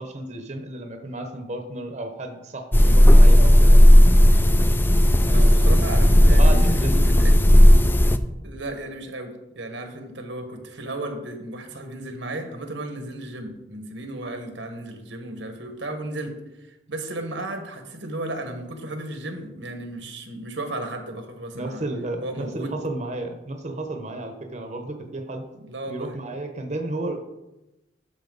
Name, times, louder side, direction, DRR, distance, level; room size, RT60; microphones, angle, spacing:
voice 1, 0.0-3.8 5.2-7.1 21.5-25.5 25.9-27.2, right 2 dB, 40° right, 5 dB, 0.9 m, -32 dB
sound 1, 2.7-8.2, equal, 10° left, 0.4 m, -13 dB
voice 2, 5.3-6.7 7.1-7.4 8.4-21.8 22.2-22.7 25.6-26.1, right 1 dB, 90° right, 5 dB, 1.5 m, -34 dB
12.0 x 5.7 x 4.0 m, 0.98 s
head